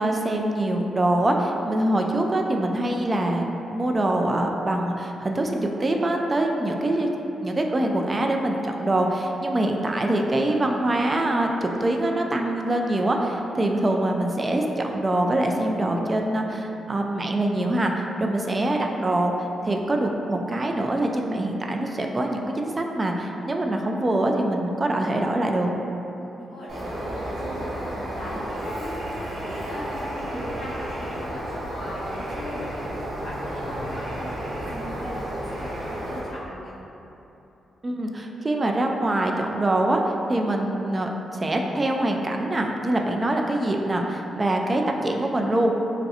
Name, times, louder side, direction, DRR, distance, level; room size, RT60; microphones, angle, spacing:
voice 1, 0.0-3.4 3.7-7.1 7.4-19.3 19.6-25.7 37.8-40.0 40.3-45.8, right 1 dB, 35° right, 2 dB, 0.3 m, -24 dB
voice 2, 26.2-28.9 29.4-36.8, equal, 90° left, -13 dB, 0.5 m, -38 dB
Bird, 26.7-36.2, equal, 75° right, 0.7 m, -32 dB
3.1 x 2.5 x 2.7 m, 2.9 s
hypercardioid pair, 45°, 0 cm